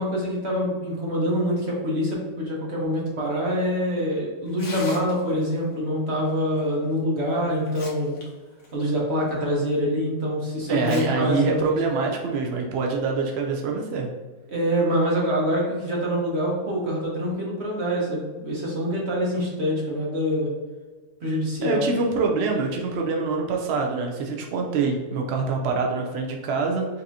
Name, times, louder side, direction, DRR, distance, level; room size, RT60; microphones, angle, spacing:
voice 1, 0.0-8.2 8.7-11.8 14.5-20.5 21.2-21.9, equal, 45° right, -3 dB, 1.1 m, -25 dB
Tearing, 4.5-5.5 6.9-7.0 7.5-8.2 8.6-8.7 9.4-9.5 10.7-11.0 11.4-11.5 12.4-12.6, left 2 dB, 65° left, 1.3 m, -40 dB
voice 2, 10.7-14.1 21.6-26.9, right 4 dB, 70° right, 1 dB, 0.6 m, -25 dB
5.5 x 2.7 x 2.7 m, 1.4 s
omnidirectional pair, 1.7 m